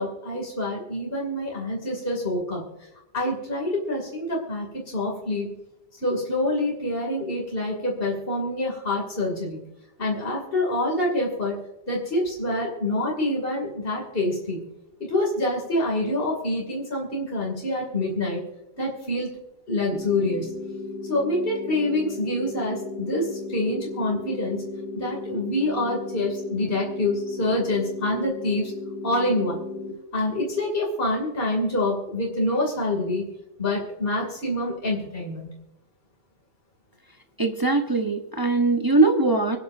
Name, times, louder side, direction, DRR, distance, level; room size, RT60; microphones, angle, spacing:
voice 1, 0.0-2.6 3.1-5.5 6.0-9.6 10.0-11.6 11.9-14.6 15.0-18.4 18.8-19.3 19.7-20.6 21.1-24.6 24.9-28.7 29.0-29.6 30.1-33.2 33.6-35.5, left 1 dB, 50° left, -1 dB, 3.0 m, -26 dB
sound 1, 19.9-29.9, left 3 dB, 70° left, 2.9 m, -35 dB
voice 2, 37.4-39.6, right 3 dB, 20° right, 3 dB, 1.0 m, -21 dB
25.5 x 9.5 x 2.7 m, 0.91 s
omnidirectional pair, 1.2 m